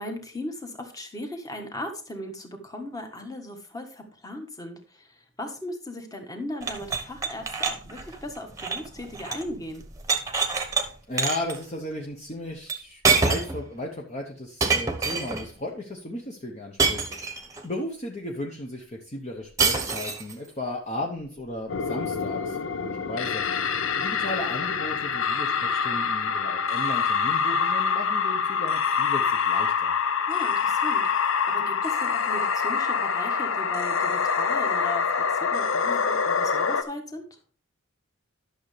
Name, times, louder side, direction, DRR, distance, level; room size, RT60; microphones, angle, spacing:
voice 1, 0.0-9.8 22.8-23.1 30.3-37.2, left 1 dB, 15° left, 4 dB, 1.4 m, -37 dB
sound 1, 6.6-9.5 9.8-10.8 11.2-11.6 12.7-12.8 13.0-13.6 14.6-15.5 16.8-17.6 19.6-20.3, right 4 dB, 15° right, 1.0 m, -26 dB
voice 2, 11.1-29.9, left 1 dB, 30° left, 0 dB, 0.9 m, -35 dB
sound 2, 21.7-36.8, left 6 dB, 65° left, 0.6 m, -25 dB
11.5 x 6.5 x 3.3 m, 0.41 s
head